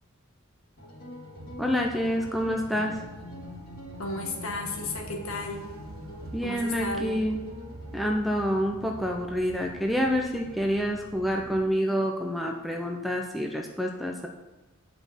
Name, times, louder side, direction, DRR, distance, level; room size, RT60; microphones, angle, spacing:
sound 1, 0.8-8.2, left 1 dB, 45° left, 2.8 m, -44 dB
sound 2, 1.4-11.7, right 2 dB, 70° right, 1.0 m, -46 dB
voice 1, 1.6-3.0 6.3-7.4 7.9-14.3, equal, ahead, 1 dB, 0.7 m, -28 dB
voice 2, 4.0-5.6 6.4-7.2, left 2 dB, 70° left, 2 dB, 1.7 m, -33 dB
9.6 x 5.7 x 6.1 m, 1.1 s
head